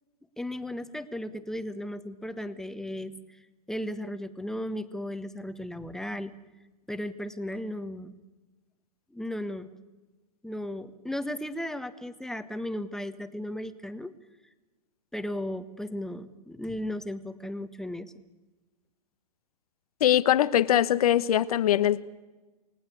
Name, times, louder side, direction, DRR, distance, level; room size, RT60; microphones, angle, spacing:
voice 1, 0.4-3.2 3.7-6.3 6.9-8.1 9.1-9.7 10.4-14.1 15.1-18.1, left 1 dB, ahead, 1.4 m, -35 dB
voice 2, 20.0-22.0, left 11 dB, 70° left, 1.2 m, -22 dB
29.0 x 18.5 x 8.3 m
hypercardioid pair, 120°, 20 cm